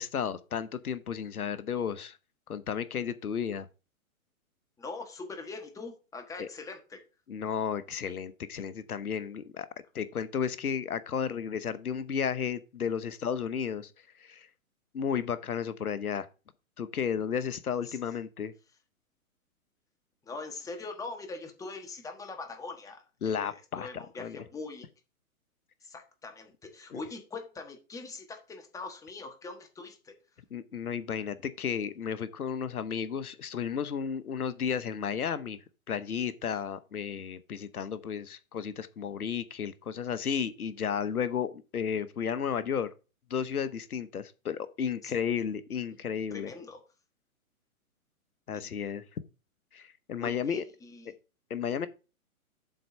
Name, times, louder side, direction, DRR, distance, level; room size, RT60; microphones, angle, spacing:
voice 1, 0.0-2.2 2.5-3.7 6.4-6.5 7.3-9.7 9.9-13.9 14.2-14.5 14.9-16.3 16.8-18.5 23.2-24.4 26.9-27.0 30.5-35.6 35.9-42.9 43.3-46.5 48.5-49.0 49.7-50.6 51.5-51.9, left 7 dB, 80° left, 0.9 m, -33 dB
voice 2, 4.8-7.0 17.9-18.0 20.2-24.9 25.8-30.1 45.0-45.1 46.3-46.8 48.5-48.9 50.2-51.1, left 3 dB, 10° left, 1.3 m, -42 dB
7.8 x 4.5 x 6.3 m
hypercardioid pair, 130°, 43 cm